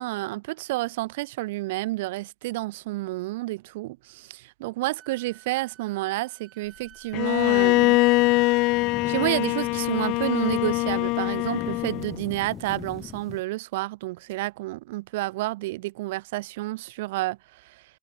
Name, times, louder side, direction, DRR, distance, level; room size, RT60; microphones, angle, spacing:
voice 1, 0.0-8.0 9.1-17.8, right 19 dB, 80° right, 0.4 m, -30 dB
Wind instrument woodwind instrument, 5.0-10.1, right 12 dB, 40° right, 2.5 m, -53 dB
Bowed string instrument, 7.1-12.2, left 24 dB, 60° left, 0.4 m, -23 dB
sound 1, 7.4-13.4, left 8 dB, 30° left, 3.9 m, -41 dB
supercardioid pair, 120°, 0 cm